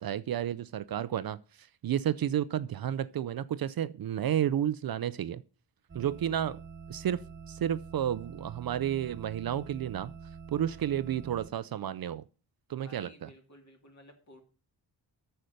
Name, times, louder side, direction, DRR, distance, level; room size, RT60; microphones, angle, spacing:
voice 1, 0.0-5.4 5.9-6.6 6.9-10.1 10.5-12.2 12.7-13.3, right 10 dB, 55° right, 0.5 m, -31 dB
sound 1, 5.9-11.5, right 5 dB, 25° right, 1.5 m, -46 dB
voice 2, 12.7-14.4, left 1 dB, 40° left, 2.8 m, -55 dB
8.6 x 6.7 x 6.5 m
wide cardioid pair, 120°, 43 cm